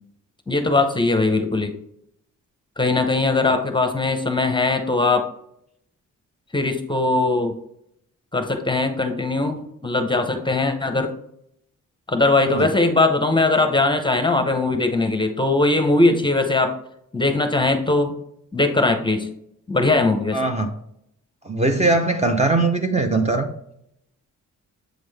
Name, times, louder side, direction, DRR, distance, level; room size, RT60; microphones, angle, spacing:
voice 1, 0.5-1.7 2.8-5.3 6.5-7.5 8.3-11.1 12.1-16.7 17.1-18.1 18.5-19.3 19.7-20.4, left 2 dB, 15° left, 6 dB, 0.7 m, -20 dB
voice 2, 20.3-20.7 21.4-23.5, right 2 dB, 20° right, 5 dB, 0.6 m, -20 dB
7.9 x 3.7 x 3.3 m, 0.74 s
wide cardioid pair, 115°, 32 cm